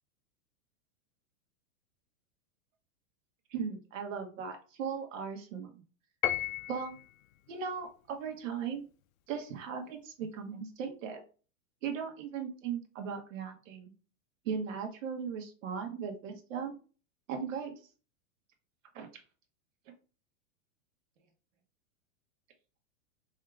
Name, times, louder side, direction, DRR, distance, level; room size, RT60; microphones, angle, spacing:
voice 1, 3.5-5.8 6.7-6.9 7.5-8.8 9.3-11.2 11.8-13.9 14.4-16.8 17.3-17.7 18.9-19.1, right 6 dB, 65° right, 4 dB, 1.2 m, -38 dB
Piano, 6.2-7.1, left 12 dB, 80° left, 0.5 m, -33 dB
4.6 x 2.8 x 2.3 m, 0.36 s
supercardioid pair, 160°, 40 cm